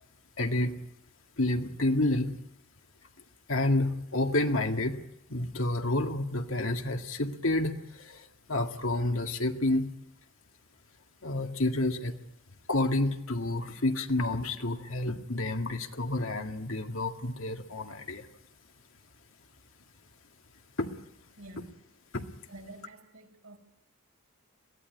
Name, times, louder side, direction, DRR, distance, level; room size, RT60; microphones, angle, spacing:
voice 1, 0.4-0.8 1.4-2.3 3.5-5.0 5.3-9.9 11.2-12.2 12.7-18.3 20.8-20.9 22.1-22.2, left 2 dB, 70° left, 4 dB, 2.0 m, -29 dB
voice 2, 21.4-21.8 22.5-23.6, right 1 dB, 80° right, 3 dB, 5.8 m, -48 dB
23.0 x 16.5 x 9.7 m, 0.81 s
head